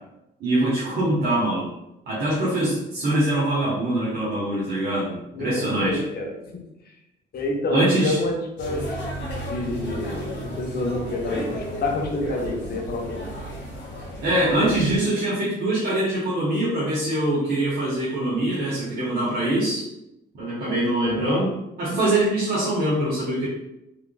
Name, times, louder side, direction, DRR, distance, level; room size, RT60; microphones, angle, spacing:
voice 1, 0.4-1.7 2.1-6.0 7.7-8.2 14.2-19.9 20.3-21.5 21.8-23.5, right 1 dB, 55° right, -7 dB, 1.1 m, -23 dB
voice 2, 5.3-6.9 7.3-9.0 9.4-13.2 21.0-21.4, left 2 dB, 55° left, 1 dB, 0.9 m, -28 dB
sound 1, 8.6-15.0, equal, 70° left, 1.3 m, -33 dB
3.7 x 3.5 x 2.3 m, 0.88 s
cardioid pair, 90°, 20 cm